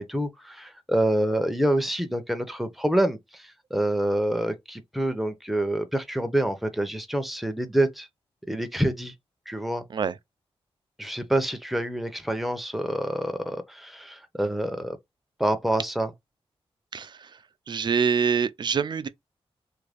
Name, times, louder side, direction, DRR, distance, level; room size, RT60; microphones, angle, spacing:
voice 1, 0.0-8.1 8.5-9.1 9.5-9.9 11.0-15.0 15.4-16.1, right 1 dB, ahead, 0.6 m, -27 dB
voice 2, 16.9-17.4 17.7-19.1, right 6 dB, 45° right, 0.4 m, -25 dB
3.1 x 2.5 x 3.3 m
wide cardioid pair, 110°, 10 cm